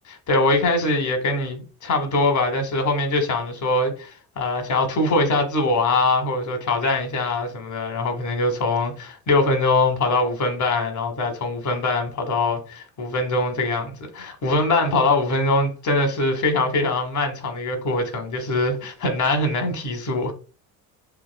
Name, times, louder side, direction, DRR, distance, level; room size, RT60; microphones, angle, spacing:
voice 1, 0.1-20.3, left 2 dB, 40° left, 1.4 m, -22 dB
4.2 x 3.5 x 2.2 m
figure-of-eight pair, 50°, 47 cm